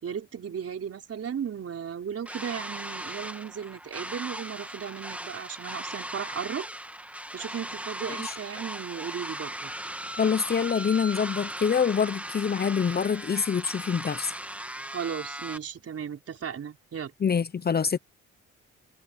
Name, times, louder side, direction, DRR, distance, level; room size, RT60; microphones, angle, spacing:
voice 1, 0.0-6.7 7.3-9.7 14.9-17.1, right 8 dB, 50° right, 4.8 m, -36 dB
sound 1, 2.3-15.6, right 1 dB, 5° right, 2.0 m, -38 dB
voice 2, 10.2-14.3 17.2-18.0, left 6 dB, 35° left, 0.8 m, -25 dB
cardioid pair, 90°, 30 cm